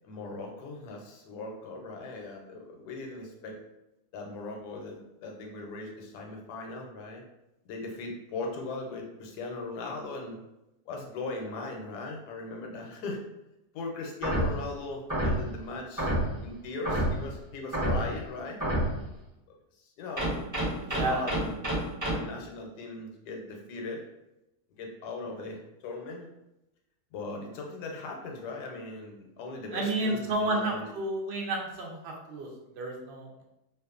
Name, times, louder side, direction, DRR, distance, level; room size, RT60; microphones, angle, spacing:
voice 1, 0.0-3.6 4.1-7.2 7.7-10.4 10.9-13.2 13.7-16.1 16.4-18.6 20.0-20.4 20.8-21.6 22.1-24.0 24.8-26.3 27.1-30.9, left 3 dB, 80° left, 1 dB, 1.1 m, -39 dB
sound 1, 14.2-14.6 15.1-15.5 16.0-16.4 16.8-17.2 17.7-18.1 18.6-19.0 20.2-22.1, right 1 dB, 20° right, 0.5 m, -28 dB
voice 2, 20.9-21.2 29.7-33.4, right 2 dB, 70° right, -1 dB, 0.6 m, -31 dB
2.5 x 2.4 x 2.3 m, 0.92 s
omnidirectional pair, 1.7 m